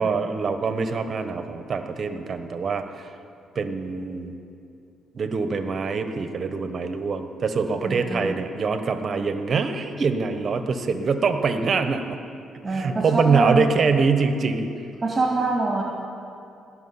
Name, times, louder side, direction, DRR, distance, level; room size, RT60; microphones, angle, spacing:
voice 1, 0.0-3.1 3.5-4.3 5.1-12.2 12.7-14.7, right 5 dB, 50° right, 8 dB, 1.1 m, -24 dB
voice 2, 7.9-8.4 12.6-13.7 15.0-15.8, right 3 dB, 25° right, -2 dB, 2.3 m, -24 dB
18.5 x 6.2 x 9.7 m, 2.6 s
cardioid pair, 90°, 0 cm